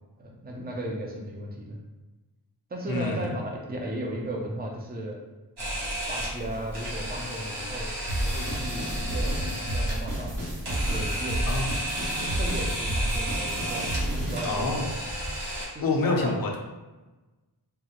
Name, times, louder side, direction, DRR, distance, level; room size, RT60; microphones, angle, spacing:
voice 1, 0.2-1.8 2.7-5.2 5.6-7.9 8.2-10.4 10.7-11.5 12.2-13.9 14.2-14.8 15.7-16.3, right 1 dB, 20° right, -1 dB, 0.6 m, -35 dB
voice 2, 2.9-3.3 11.5-11.7 14.4-14.9 15.8-16.6, left 3 dB, 55° left, 1 dB, 0.6 m, -27 dB
Camera, 5.6-15.7, equal, 70° right, 1.2 m, -33 dB
sound 1, 8.1-14.5, right 1 dB, 45° right, 1.0 m, -31 dB
3.5 x 2.1 x 2.9 m, 1.2 s
wide cardioid pair, 80°, 42 cm